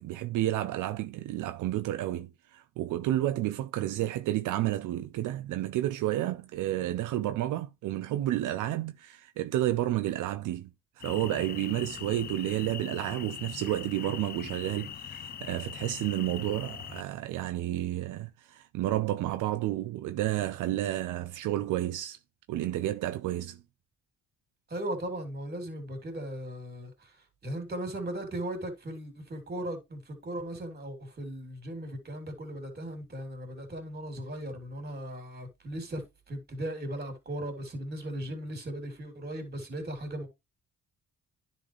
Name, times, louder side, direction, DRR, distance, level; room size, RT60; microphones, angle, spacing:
voice 1, 0.0-10.7 11.0-22.2 22.5-23.6, right 14 dB, 80° right, 0.6 m, -31 dB
sound 1, 11.0-17.0, left 9 dB, 35° left, 0.4 m, -41 dB
voice 2, 24.7-27.2 27.4-40.3, right 1 dB, 35° right, 3.1 m, -37 dB
10.0 x 4.2 x 3.2 m
cardioid pair, 90°, 30 cm